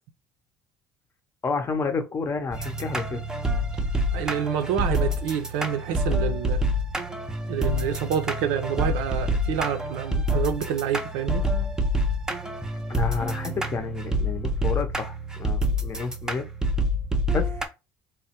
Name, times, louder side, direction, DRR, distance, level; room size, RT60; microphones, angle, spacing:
voice 1, 1.4-3.2 12.9-16.5 17.3-17.6, left 4 dB, 30° left, 0.6 m, -30 dB
sound 1, 2.5-17.6, equal, 10° right, 0.5 m, -27 dB
voice 2, 4.1-6.6 7.5-11.4, right 8 dB, 85° right, 0.5 m, -28 dB
3.4 x 2.1 x 2.9 m
supercardioid pair, 100°, 8 cm